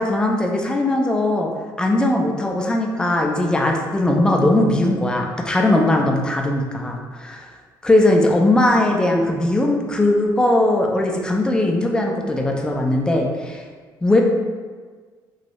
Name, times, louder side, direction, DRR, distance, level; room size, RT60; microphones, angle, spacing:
voice 1, 0.0-1.5 1.8-7.5 7.8-13.6 14.0-14.2, left 1 dB, 10° left, 1 dB, 0.4 m, -19 dB
3.1 x 2.6 x 2.9 m, 1.5 s
cardioid pair, 135°, 8 cm